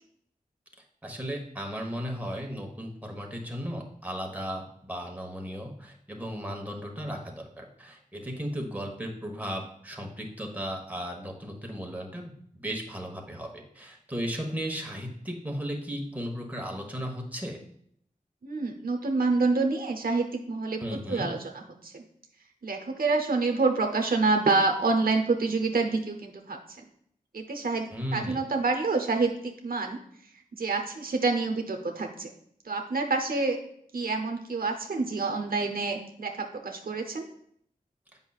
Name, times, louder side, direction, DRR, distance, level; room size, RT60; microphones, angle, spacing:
voice 1, 1.0-13.5 13.7-17.6 20.8-21.3 27.9-28.4, equal, 10° right, 1 dB, 1.2 m, -35 dB
voice 2, 18.4-20.8 21.1-22.0 22.6-26.6 27.3-30.0 30.5-32.3 32.6-33.6 33.9-37.3, right 3 dB, 75° right, 4 dB, 0.7 m, -27 dB
8.0 x 5.4 x 2.4 m, 0.68 s
wide cardioid pair, 50°, 15 cm